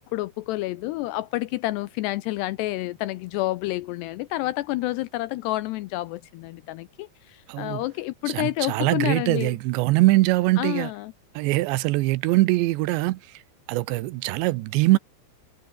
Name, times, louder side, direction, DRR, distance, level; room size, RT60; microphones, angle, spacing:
voice 1, 0.1-9.6 10.6-11.1, left 17 dB, 85° left, 2.4 m, -29 dB
voice 2, 7.5-7.8 8.3-10.9 11.3-13.4 13.7-15.0, right 19 dB, 85° right, 2.8 m, -22 dB
omnidirectional pair, 5.5 m